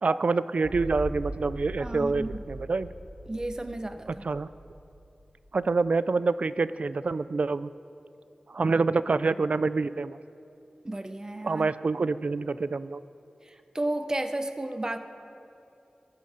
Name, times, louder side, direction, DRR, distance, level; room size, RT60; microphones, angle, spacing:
voice 1, 0.0-2.9 4.2-4.5 5.5-7.7 8.5-10.2 11.4-13.0, right 4 dB, 60° right, 16 dB, 0.3 m, -26 dB
sound 1, 0.6-5.8, right 1 dB, 5° left, 3.9 m, -40 dB
voice 2, 1.8-2.4 3.3-4.2 10.8-11.7 13.5-15.0, right 1 dB, 25° right, 8 dB, 0.7 m, -33 dB
14.5 x 11.5 x 5.0 m, 2.7 s
wide cardioid pair, 85°, 3 cm